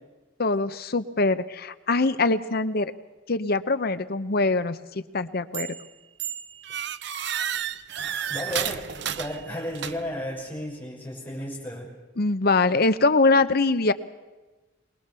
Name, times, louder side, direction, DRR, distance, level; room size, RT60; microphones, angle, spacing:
voice 1, 0.4-2.9 3.3-5.7 12.2-13.9, left 3 dB, 55° left, 12 dB, 0.8 m, -23 dB
sound 1, 5.5-5.9 6.2-10.2, right 9 dB, 60° right, 0.7 m, -32 dB
voice 2, 8.3-11.9, left 1 dB, 10° left, -3 dB, 5.6 m, -33 dB
22.5 x 20.0 x 6.9 m, 1.2 s
head